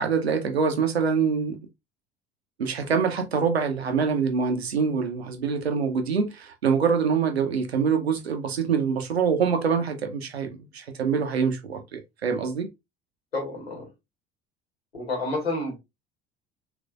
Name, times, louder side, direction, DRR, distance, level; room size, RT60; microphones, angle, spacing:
voice 1, 0.0-1.5 2.6-10.5 10.7-12.7, right 6 dB, 85° right, 0.6 m, -25 dB
voice 2, 13.3-13.9 14.9-15.8, left 2 dB, 85° left, 1.6 m, -29 dB
3.4 x 3.2 x 2.3 m
figure-of-eight pair, 60°, 31 cm